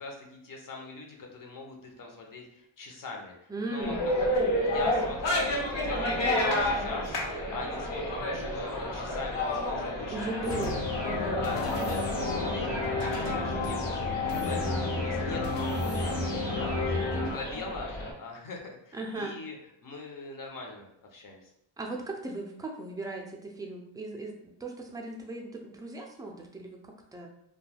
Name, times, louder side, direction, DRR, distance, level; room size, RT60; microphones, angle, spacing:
voice 1, 0.0-10.9 11.4-16.2 16.5-17.9 18.2-19.6 19.8-21.5, left 3 dB, 45° left, 1 dB, 0.7 m, -42 dB
voice 2, 3.5-4.0 10.1-11.4 18.9-19.3 21.8-27.3, right 2 dB, 10° right, 1 dB, 0.4 m, -37 dB
sound 1, 3.8-18.1, left 1 dB, 65° left, 0.9 m, -31 dB
sound 2, 10.4-17.3, left 3 dB, 90° left, 1.2 m, -31 dB
2.3 x 2.2 x 3.3 m, 0.77 s
cardioid pair, 85°, 46 cm